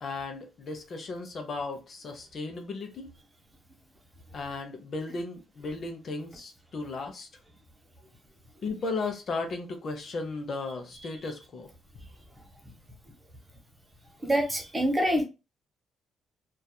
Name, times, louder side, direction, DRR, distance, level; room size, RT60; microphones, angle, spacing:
voice 1, 0.0-3.1 4.3-7.3 8.6-11.7, left 3 dB, 55° left, 0.6 m, -35 dB
voice 2, 14.2-15.2, equal, 20° right, 0.9 m, -25 dB
2.7 x 2.3 x 2.2 m
cardioid pair, 90°, 0 cm